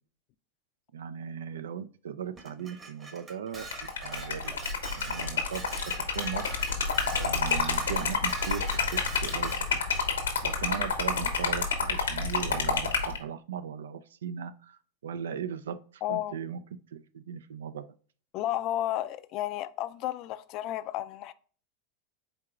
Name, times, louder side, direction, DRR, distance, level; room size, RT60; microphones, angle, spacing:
voice 1, 0.9-4.5 5.0-5.7 6.1-6.6 7.1-8.7 8.9-9.8 10.4-16.6 16.9-17.9, right 8 dB, 85° right, 0.3 m, -38 dB
Dishes pots and pans, 2.4-10.1, right 3 dB, 30° right, 1.2 m, -44 dB
Liquid, 3.6-13.2, left 5 dB, 90° left, 0.9 m, -29 dB
voice 2, 16.0-16.4 18.3-21.3, left 13 dB, 50° left, 0.3 m, -32 dB
4.5 x 3.8 x 2.4 m
hypercardioid pair, 100°, 0 cm